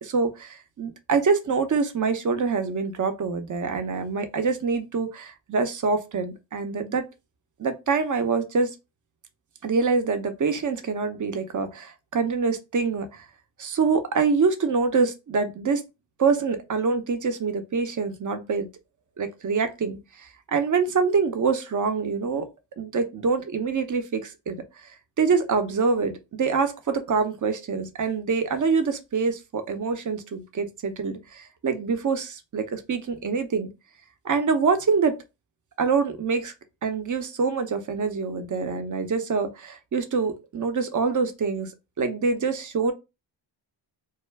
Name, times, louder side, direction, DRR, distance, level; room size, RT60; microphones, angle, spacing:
voice 1, 0.0-7.1 7.6-8.7 9.6-13.2 13.6-15.8 16.2-18.7 19.2-22.5 22.8-24.6 25.2-33.7 34.2-35.2 35.8-36.5 36.8-41.7 42.0-42.9, right 5 dB, 40° right, 0.6 m, -25 dB
2.2 x 2.1 x 3.2 m
cardioid pair, 50°, 48 cm